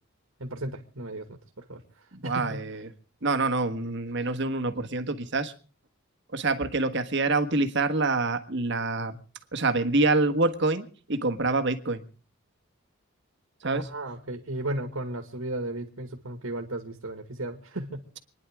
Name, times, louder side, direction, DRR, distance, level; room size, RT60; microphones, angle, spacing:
voice 1, 0.4-1.3 1.6-1.8 2.2-2.6 13.6-18.0, right 1 dB, 70° right, 3 dB, 2.1 m, -35 dB
voice 2, 2.1-2.9 3.2-5.5 6.3-9.2 9.5-12.1 13.6-13.9, right 3 dB, 55° right, 8 dB, 1.6 m, -26 dB
28.0 x 11.0 x 3.6 m, 0.40 s
head